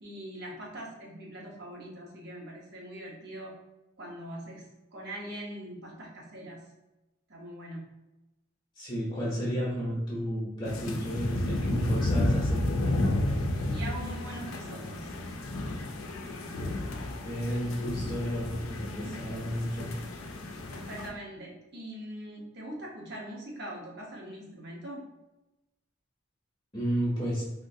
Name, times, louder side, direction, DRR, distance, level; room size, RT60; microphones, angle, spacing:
voice 1, 0.0-3.5 4.0-6.7 7.3-7.8 13.7-15.1 19.0-19.3 20.7-25.0, right 1 dB, 50° right, -3 dB, 0.9 m, -42 dB
voice 2, 8.8-12.7 17.2-19.9 26.7-27.4, equal, 25° left, -6 dB, 0.7 m, -32 dB
sound 1, 10.7-21.1, left 1 dB, 80° left, 0.5 m, -32 dB
3.5 x 2.5 x 2.6 m, 1.0 s
head